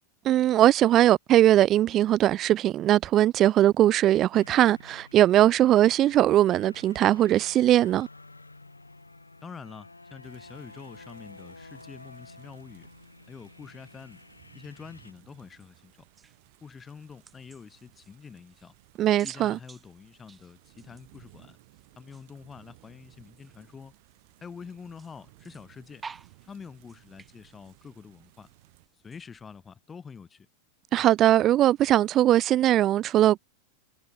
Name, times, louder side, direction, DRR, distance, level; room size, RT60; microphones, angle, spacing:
voice 1, 0.2-8.1 19.0-19.6 30.9-33.4, right 13 dB, 30° right, 0.4 m, -20 dB
sound 1, 4.3-15.1, left 2 dB, 80° left, 4.3 m, -50 dB
voice 2, 9.4-12.9 13.3-14.2 14.5-16.0 16.6-18.7 19.2-21.6 22.0-23.9 24.4-26.0 26.4-28.5 29.0-30.5, left 6 dB, 20° left, 5.5 m, -46 dB
sound 2, 10.2-28.9, right 23 dB, 50° right, 8.0 m, -59 dB
sound 3, 15.5-29.8, right 5 dB, 15° right, 5.9 m, -54 dB
figure-of-eight pair, 90°, 0 cm